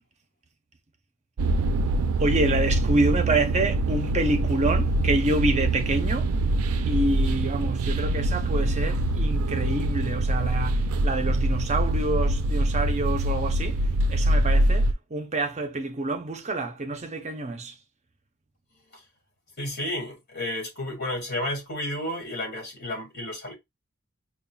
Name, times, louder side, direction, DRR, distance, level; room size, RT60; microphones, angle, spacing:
sound 1, 1.4-14.9, right 1 dB, 80° right, 0.4 m, -24 dB
voice 1, 2.2-6.4 6.8-17.8, right 2 dB, 30° right, 0.6 m, -27 dB
voice 2, 19.6-23.5, left 1 dB, 50° left, 1.9 m, -32 dB
5.3 x 2.3 x 2.3 m
head